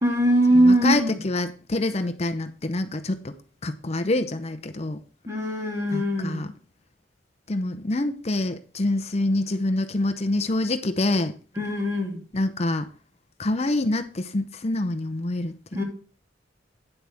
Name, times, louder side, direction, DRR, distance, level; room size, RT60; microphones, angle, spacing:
voice 1, 0.0-1.2 5.3-6.5 11.5-12.2 15.7-15.8, right 1 dB, 15° right, 2.9 m, -21 dB
voice 2, 0.7-3.3 3.6-5.0 5.9-6.5 7.5-11.3 12.3-12.9 13.4-15.8, left 2 dB, 35° left, 0.7 m, -26 dB
10.0 x 8.0 x 3.5 m
head